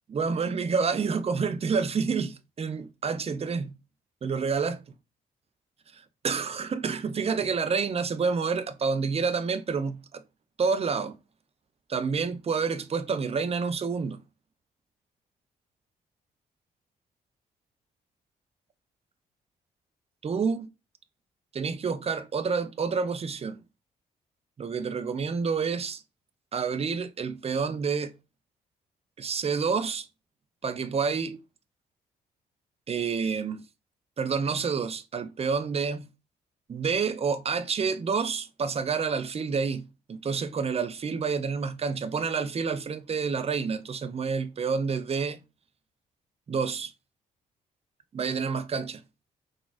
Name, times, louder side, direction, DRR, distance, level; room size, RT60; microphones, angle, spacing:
voice 1, 0.1-3.8 4.2-4.8 5.9-10.2 10.6-11.2 11.9-14.2 20.2-20.7 21.5-23.6 24.6-26.0 26.5-28.1 29.2-30.1 30.6-31.4 32.9-33.6 34.2-36.0 36.7-45.4 46.5-46.9 48.1-49.0, right 5 dB, 30° right, 0.5 m, -28 dB
3.8 x 2.4 x 2.4 m
hypercardioid pair, 40°, 20 cm